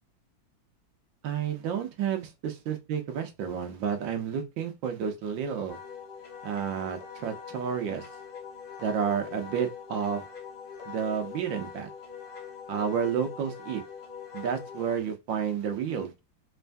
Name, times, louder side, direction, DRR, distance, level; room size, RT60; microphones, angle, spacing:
voice 1, 1.2-5.8 6.4-8.0 8.8-10.2 10.8-11.9 12.7-13.8 14.3-16.2, right 7 dB, 80° right, 1.6 m, -31 dB
Wind instrument woodwind instrument, 5.7-15.0, left 6 dB, 70° left, 1.8 m, -43 dB
4.3 x 3.4 x 2.6 m
omnidirectional pair, 2.0 m